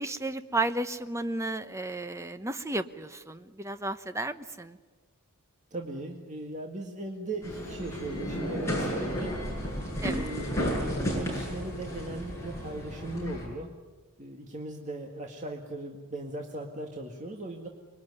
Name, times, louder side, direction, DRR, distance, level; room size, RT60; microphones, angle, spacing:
voice 1, 0.0-4.8 10.0-10.3, right 2 dB, 15° right, 10 dB, 0.9 m, -33 dB
voice 2, 5.7-9.4 10.1-10.7 11.1-13.7 14.2-17.7, right 2 dB, 35° right, 2 dB, 1.9 m, -38 dB
sound 1, 7.4-13.5, equal, 15° left, 8.0 m, -33 dB
25.0 x 22.0 x 9.7 m, 1.3 s
head